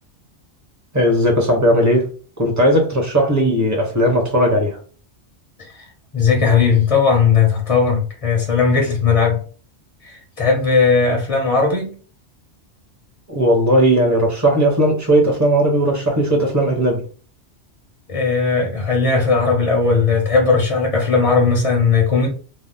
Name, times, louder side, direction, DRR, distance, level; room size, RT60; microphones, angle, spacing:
voice 1, 0.9-2.1 2.4-4.8 13.3-17.0, equal, 15° right, 0.8 m, -16 dB
voice 2, 6.1-9.4 10.0-11.9 18.1-22.3, left 5 dB, 35° left, 0.6 m, -17 dB
2.7 x 2.1 x 3.4 m
omnidirectional pair, 1.2 m